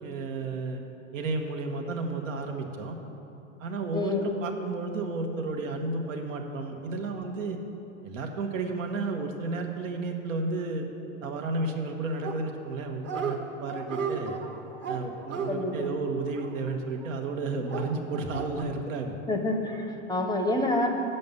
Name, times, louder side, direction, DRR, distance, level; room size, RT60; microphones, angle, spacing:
voice 1, 0.0-0.8 1.1-3.0 3.6-7.6 8.0-10.9 11.2-14.4 14.9-19.1, right 3 dB, 80° right, 3 dB, 1.1 m, -32 dB
voice 2, 3.9-4.4 15.5-16.0 19.3-20.9, left 2 dB, 10° left, 3 dB, 0.6 m, -28 dB
Dog, 12.2-12.7 13.0-13.4 13.7-17.1 17.7-18.6, right 6 dB, 30° right, 0.8 m, -35 dB
7.7 x 5.4 x 7.0 m, 2.9 s
hypercardioid pair, 105°, 38 cm